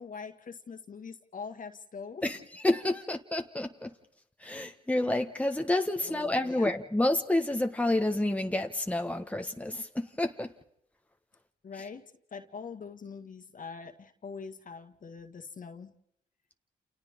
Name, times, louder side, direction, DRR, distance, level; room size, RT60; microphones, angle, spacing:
voice 1, 0.0-2.4 6.0-6.8 11.6-15.9, left 5 dB, 55° left, 1.9 m, -43 dB
voice 2, 2.6-3.9 4.4-10.5, left 1 dB, 10° left, 1.5 m, -29 dB
29.5 x 28.5 x 3.7 m
supercardioid pair, 55°, 17 cm